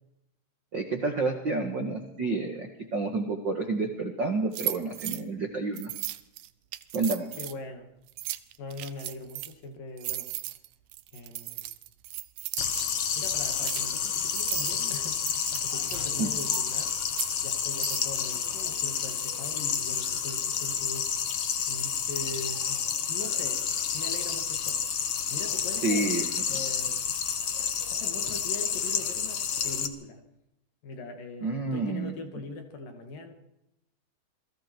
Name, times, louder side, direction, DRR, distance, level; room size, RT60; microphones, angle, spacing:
voice 1, 0.7-5.9 6.9-7.3 16.2-16.3 25.8-26.3 31.4-32.1, right 3 dB, 50° right, 4 dB, 1.3 m, -29 dB
sound 1, 4.5-5.2 5.8-7.5 8.1-9.5 10.0-13.8 14.3-14.8 15.1-17.3 17.8-18.1, right 15 dB, 80° right, 2.1 m, -36 dB
voice 2, 7.4-7.9 8.6-10.3 11.1-11.7 13.2-17.0 17.4-21.1 21.7-22.8 23.1-23.7 23.9-26.1 26.5-27.3 27.9-30.2 30.8-33.3, left 3 dB, 55° left, 5 dB, 3.5 m, -41 dB
sound 2, 12.6-29.9, left 7 dB, 75° left, 1.3 m, -30 dB
28.0 x 21.0 x 4.6 m, 0.88 s
omnidirectional pair, 5.1 m